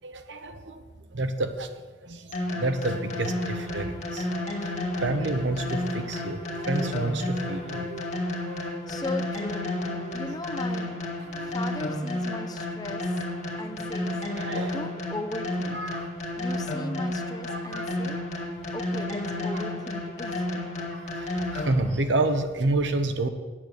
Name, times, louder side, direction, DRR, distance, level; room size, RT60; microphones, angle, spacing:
voice 1, 0.0-0.8 1.1-1.7 2.0-4.3 4.6-4.7 4.9-8.2 11.2-11.5 14.3-14.8 15.7-16.1 17.5-17.9 19.5-19.6 20.8-23.3, right 2 dB, 80° right, 8 dB, 1.0 m, -29 dB
Suspence background, 2.3-22.0, left 1 dB, 40° left, 1.7 m, -31 dB
Wind instrument woodwind instrument, 4.6-8.0 8.3-12.2, equal, 50° right, 0.9 m, -46 dB
voice 2, 8.6-11.0 11.4-13.1 13.6-14.2 14.6-15.8 16.4-18.2 18.7-20.7, left 2 dB, 20° left, 8 dB, 0.6 m, -38 dB
8.9 x 6.7 x 8.7 m, 1.4 s
head